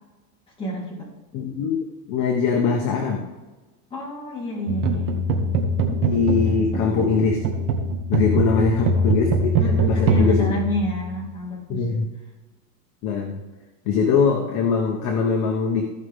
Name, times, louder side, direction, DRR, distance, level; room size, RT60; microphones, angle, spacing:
voice 1, 0.6-1.1 3.9-5.3 6.4-6.9 8.3-8.8 9.6-11.8, equal, 10° left, -6 dB, 3.6 m, -30 dB
voice 2, 1.3-1.8 2.1-3.3 6.0-7.4 8.1-10.6 11.7-12.1 13.0-13.4 13.8-15.8, left 5 dB, 35° left, 1 dB, 1.3 m, -22 dB
sound 1, 4.7-11.3, right 1 dB, 65° right, 2.2 m, -23 dB
16.0 x 5.7 x 3.7 m, 1.2 s
supercardioid pair, 155°, 49 cm